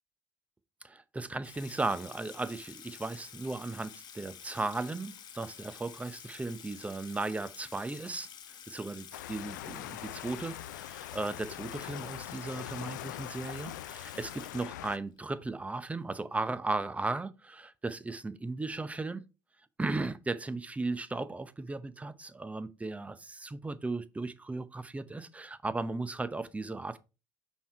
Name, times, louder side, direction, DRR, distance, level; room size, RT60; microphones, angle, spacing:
voice 1, 0.8-19.2 19.8-27.0, right 3 dB, 15° right, 0.7 m, -36 dB
Water tap faucet / Sink (filling or washing), 1.4-15.2, left 8 dB, 50° left, 1.1 m, -50 dB
sound 1, 9.1-15.0, left 14 dB, 85° left, 0.4 m, -43 dB
5.7 x 4.6 x 4.4 m
hypercardioid pair, 70°, 9 cm